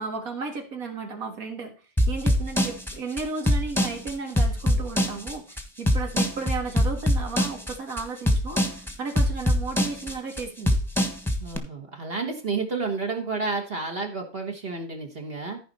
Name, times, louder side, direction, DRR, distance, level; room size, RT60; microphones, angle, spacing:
voice 1, 0.0-1.7 2.1-10.8, right 4 dB, 85° right, 5 dB, 2.2 m, -34 dB
sound 1, 2.0-11.6, left 1 dB, ahead, 1.2 m, -23 dB
voice 2, 11.4-15.6, right 4 dB, 45° right, 2 dB, 1.6 m, -30 dB
14.5 x 5.1 x 4.1 m, 0.36 s
omnidirectional pair, 1.5 m